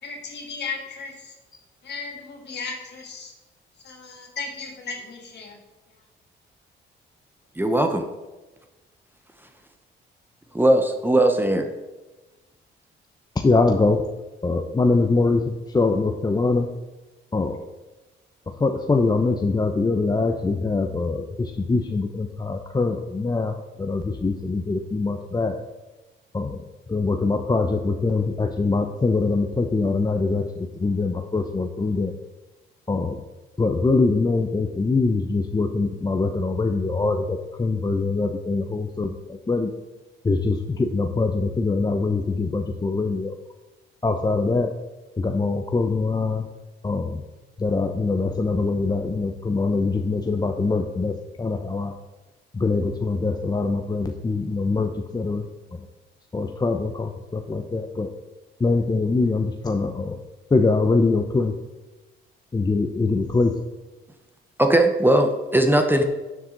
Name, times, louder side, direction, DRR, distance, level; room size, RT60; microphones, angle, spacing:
voice 1, 0.0-1.3 1.8-3.3 3.8-5.6, left 4 dB, 60° left, 1 dB, 2.9 m, -35 dB
voice 2, 7.6-8.0 10.5-11.7 64.6-66.0, right 1 dB, 10° right, 5 dB, 1.1 m, -19 dB
voice 3, 13.3-14.1 14.4-16.7 17.3-17.5 18.5-21.1 21.6-25.6 26.3-26.6 26.9-32.2 32.9-33.2 33.6-39.7 40.2-43.4 44.0-44.8 45.2-46.5 46.8-47.2 47.6-52.0 52.5-55.9 56.3-58.1 58.6-60.2 60.5-61.6 62.5-63.6, left 3 dB, 20° left, 4 dB, 0.8 m, -23 dB
12.0 x 7.5 x 4.0 m, 1.2 s
cardioid pair, 90°, 20 cm